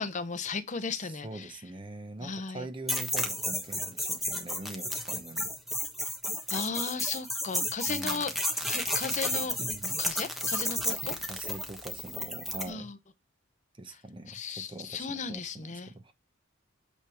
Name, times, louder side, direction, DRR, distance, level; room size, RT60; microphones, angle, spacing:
voice 1, 0.0-1.5 2.2-2.7 6.5-8.3 8.6-9.6 9.8-11.2 12.7-13.0 14.3-15.9, left 5 dB, 40° left, 0.7 m, -35 dB
voice 2, 1.0-5.5 7.9-8.4 9.1-9.2 9.6-9.9 11.3-12.9 13.8-16.1, right 2 dB, 25° right, 0.9 m, -43 dB
sound 1, 2.9-12.7, left 1 dB, ahead, 1.2 m, -32 dB
8.6 x 3.5 x 4.6 m
head